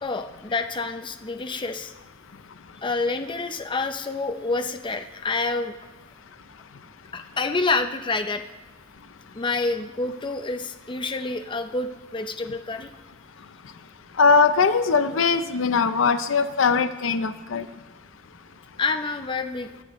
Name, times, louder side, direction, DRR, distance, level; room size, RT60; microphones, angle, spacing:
voice 1, 0.0-1.9 2.8-5.8 7.1-8.4 9.3-12.9 18.8-19.7, left 3 dB, 25° left, 6 dB, 0.6 m, -28 dB
voice 2, 14.2-17.7, left 5 dB, 75° left, 11 dB, 0.6 m, -20 dB
22.0 x 8.2 x 3.1 m, 1.2 s
head